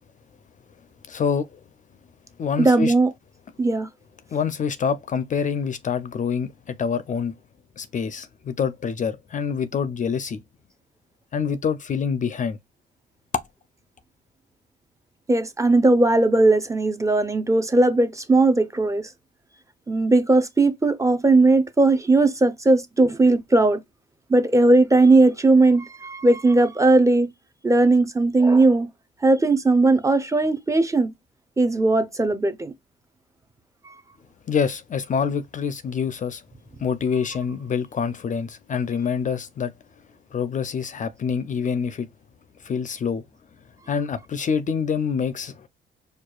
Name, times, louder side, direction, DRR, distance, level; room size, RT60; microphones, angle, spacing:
voice 1, 1.1-1.6 2.4-2.9 4.3-7.4 7.8-10.4 11.3-12.6 34.5-36.4 36.8-39.7 40.3-42.1 42.6-43.2 43.9-45.7, left 6 dB, 40° left, 0.4 m, -26 dB
voice 2, 2.6-3.1 3.6-3.9 15.3-19.1 19.9-23.8 24.3-27.3 27.6-28.9 29.2-31.1 31.6-32.7 33.8-33.9, right 2 dB, 15° right, 0.5 m, -18 dB
4.7 x 2.3 x 2.3 m
cardioid pair, 90°, 20 cm